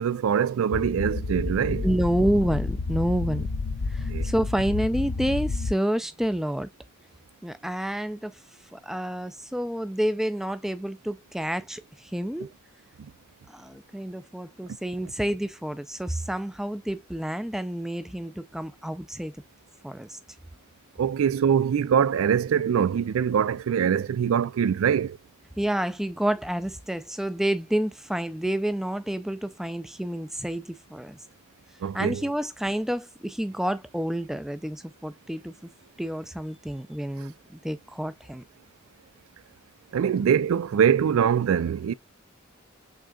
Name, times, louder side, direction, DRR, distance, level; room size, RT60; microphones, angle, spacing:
voice 1, 0.0-1.9 4.1-4.3 21.0-25.2 31.8-32.3 37.2-37.3 39.9-41.9, right 8 dB, 85° right, 0.3 m, -23 dB
sound 1, 0.7-5.7, left 3 dB, 90° left, 0.6 m, -30 dB
voice 2, 1.8-3.5 3.9-6.7 7.4-8.3 8.7-12.5 13.5-19.3 19.8-20.2 25.6-31.2 31.9-35.5 36.0-38.4, right 1 dB, ahead, 0.3 m, -29 dB
6.2 x 3.6 x 2.3 m
head